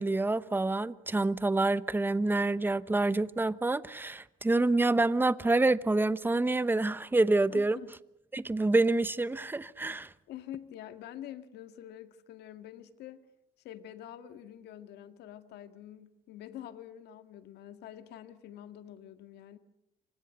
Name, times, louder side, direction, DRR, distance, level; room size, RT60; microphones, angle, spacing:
voice 1, 0.0-7.8 8.3-10.1, right 2 dB, 10° right, 0.9 m, -27 dB
voice 2, 7.5-7.9 10.3-13.2 13.6-19.6, left 11 dB, 80° left, 1.9 m, -46 dB
28.0 x 25.0 x 6.6 m
cardioid pair, 110°, 17 cm